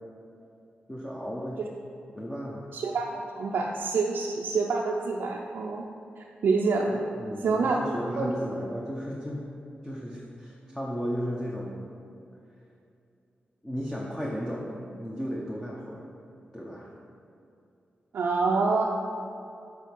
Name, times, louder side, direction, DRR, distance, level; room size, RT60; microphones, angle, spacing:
voice 1, 0.9-1.6 2.2-2.7 7.1-9.5 9.8-11.8 13.6-16.1 16.5-16.9, equal, 10° left, -3 dB, 0.8 m, -34 dB
voice 2, 2.7-5.8 6.4-7.0 7.4-7.8 8.2-8.3 18.1-18.8, right 4 dB, 80° right, -2 dB, 0.5 m, -26 dB
7.5 x 4.8 x 5.3 m, 2.6 s
wide cardioid pair, 110°, 3 cm